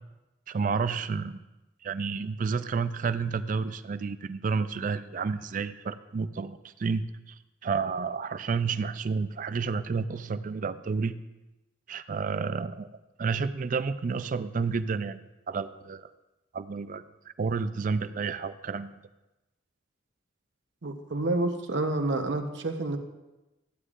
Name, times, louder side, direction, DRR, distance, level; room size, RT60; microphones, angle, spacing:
voice 1, 0.5-1.4 1.8-7.3 7.6-11.2 11.9-12.9 13.2-16.1 16.5-17.1 17.4-18.9, right 5 dB, 45° right, 13 dB, 0.4 m, -30 dB
voice 2, 20.8-23.0, right 2 dB, 70° right, 6 dB, 0.9 m, -29 dB
14.5 x 9.7 x 2.5 m, 1.0 s
head